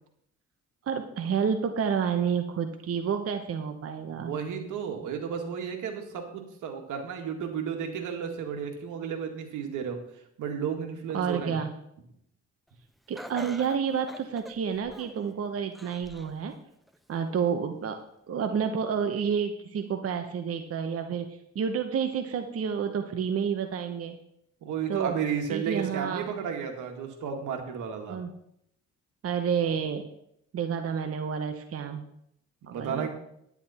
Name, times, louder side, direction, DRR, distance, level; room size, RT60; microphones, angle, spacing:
voice 1, 0.9-4.3 11.1-11.7 13.1-16.5 17.1-18.0 18.3-24.2 24.9-25.2 25.5-26.3 28.1-28.3 29.2-30.1 30.5-32.0 32.7-33.1, right 7 dB, 50° right, 6 dB, 1.0 m, -29 dB
voice 2, 4.1-10.0 10.4-11.5 24.6-28.2 32.7-33.1, right 7 dB, 85° right, 4 dB, 2.0 m, -33 dB
Laughter, 13.1-15.3 15.7-16.4 16.9-17.0 17.9-18.0, equal, ahead, 0.8 m, -44 dB
10.5 x 9.7 x 4.3 m, 0.75 s
cardioid pair, 90°, 30 cm